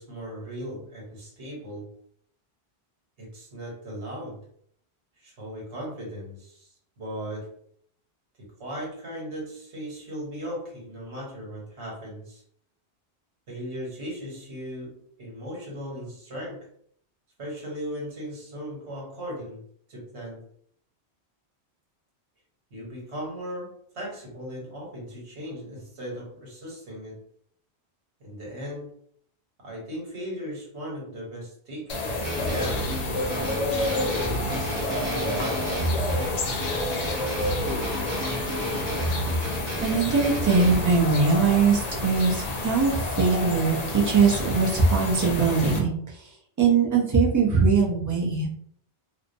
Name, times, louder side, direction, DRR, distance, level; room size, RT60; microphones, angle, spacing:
voice 1, 0.0-1.9 3.2-4.4 5.2-7.5 8.4-12.4 13.5-16.7 17.4-19.6 19.9-20.4 22.7-27.2 28.2-28.9 29.6-32.9 33.5-35.7 36.1-37.1, equal, 85° right, -4 dB, 1.4 m, -38 dB
sound 1, 31.9-45.8, left 2 dB, 55° left, 0.4 m, -30 dB
sound 2, 32.2-41.0, right 1 dB, 50° right, 0.9 m, -31 dB
voice 2, 39.8-45.9 46.6-48.5, right 4 dB, 25° right, -2 dB, 0.4 m, -21 dB
2.6 x 2.0 x 2.6 m, 0.64 s
omnidirectional pair, 1.1 m